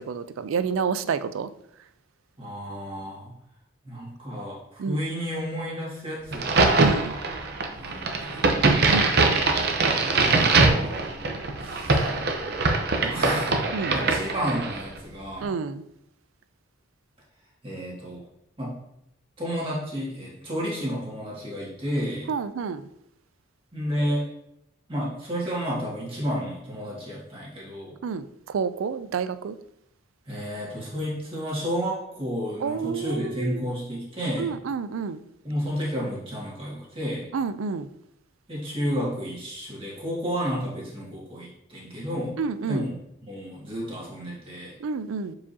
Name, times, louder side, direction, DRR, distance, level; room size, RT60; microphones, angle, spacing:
voice 1, 0.0-1.5 4.8-5.0 6.8-7.2 8.9-9.4 13.7-14.0 15.4-15.8 22.3-22.9 28.0-29.6 32.6-33.6 34.4-35.2 37.3-37.9 42.4-42.8 44.8-45.3, right 5 dB, 85° right, 0.4 m, -29 dB
voice 2, 2.4-3.3 3.8-7.2 7.7-9.0 9.9-11.1 11.6-12.1 13.0-13.6 13.9-15.5 17.6-18.2 18.6-18.8 19.4-22.3 23.7-24.3 24.9-28.0 30.3-34.6 35.4-37.3 38.5-42.4 42.7-42.9 43.2-44.8, equal, 25° right, 1.9 m, -31 dB
Crack, 6.3-14.9, right 3 dB, 50° right, 0.7 m, -22 dB
7.1 x 4.8 x 2.8 m
head